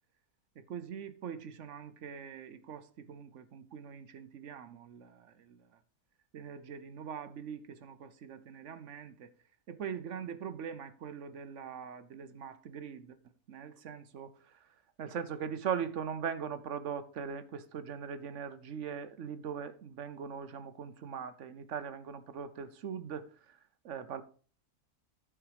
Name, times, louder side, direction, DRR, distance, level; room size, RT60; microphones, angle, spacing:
voice 1, 0.6-5.6 6.3-9.3 9.7-13.2 13.5-14.6 15.0-23.6 23.8-24.2, right 7 dB, 60° right, 1.0 m, -41 dB
11.0 x 4.9 x 4.8 m
omnidirectional pair, 1.6 m